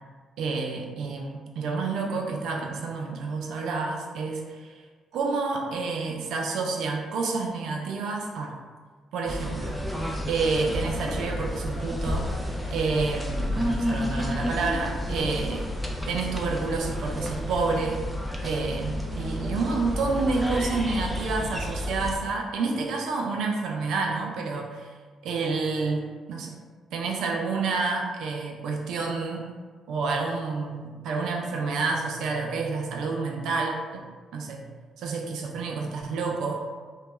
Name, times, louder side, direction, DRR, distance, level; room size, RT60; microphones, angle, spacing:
voice 1, 0.4-4.8 5.1-8.5 9.1-9.8 10.3-12.2 12.7-15.7 16.1-18.0 18.4-24.9 25.2-26.6 26.9-29.5 29.9-34.0 34.3-34.6 35.0-36.7, right 4 dB, 80° right, 1 dB, 0.4 m, -29 dB
sound 1, 9.3-22.2, equal, 5° left, 0.4 m, -31 dB
sound 2, 10.7-17.3, left 1 dB, 65° left, 0.6 m, -39 dB
2.2 x 2.1 x 3.0 m, 1.5 s
cardioid pair, 90°, 0 cm